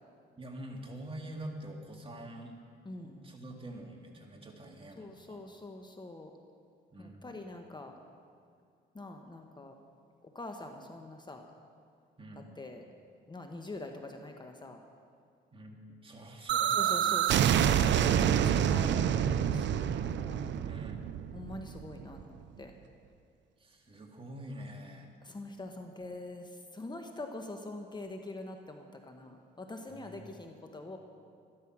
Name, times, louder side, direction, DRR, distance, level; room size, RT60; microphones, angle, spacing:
voice 1, 0.4-2.6 3.0-5.4 6.9-7.3 12.2-12.5 15.5-17.2 20.6-21.1 23.6-25.1 29.9-30.4, right 1 dB, 25° right, 1 dB, 2.1 m, -46 dB
voice 2, 2.8-3.2 5.0-6.3 7.0-7.9 8.9-9.8 10.2-11.5 12.6-12.8 13.3-14.8 16.7-19.9 20.2-20.4 21.3-22.7 25.2-31.0, left 2 dB, 20° left, 4 dB, 1.2 m, -44 dB
sound 1, 16.5-22.2, right 9 dB, 65° right, 0.6 m, -27 dB
13.0 x 12.5 x 6.1 m, 2.3 s
cardioid pair, 90°, 20 cm